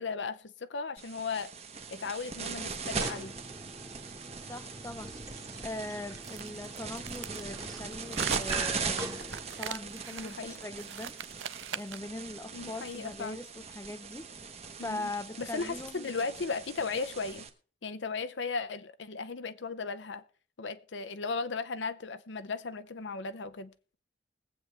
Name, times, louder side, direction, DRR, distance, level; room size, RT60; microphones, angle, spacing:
voice 1, 0.0-1.5 1.9-3.3 10.1-10.6 12.5-13.4 14.8-15.1 15.4-17.5 17.8-20.2 20.6-24.0, left 4 dB, 75° left, 0.7 m, -36 dB
sound 1, 1.0-17.5, right 5 dB, 35° right, 1.2 m, -40 dB
sound 2, 2.8-10.0, right 2 dB, 20° right, 1.5 m, -44 dB
voice 2, 4.5-5.1 5.6-11.2 11.7-14.3 14.8-16.1, left 2 dB, 15° left, 0.6 m, -41 dB
sound 3, 6.2-12.1, right 7 dB, 80° right, 0.6 m, -41 dB
21.0 x 8.0 x 3.4 m
head